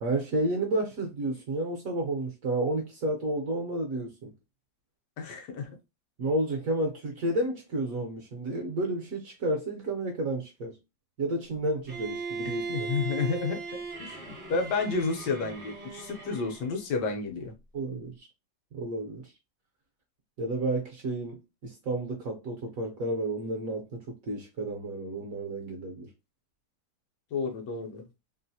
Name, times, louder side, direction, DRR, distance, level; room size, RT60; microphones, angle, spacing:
voice 1, 0.0-4.3 6.2-10.8 11.2-12.7 17.7-18.3 18.7-19.3 20.4-26.1, right 1 dB, 60° right, 0.9 m, -31 dB
voice 2, 5.2-5.8 12.4-17.5 27.3-28.0, left 4 dB, 70° left, 1.2 m, -31 dB
Bowed string instrument, 11.9-16.8, right 4 dB, 40° right, 0.7 m, -38 dB
3.1 x 2.5 x 2.7 m
omnidirectional pair, 2.0 m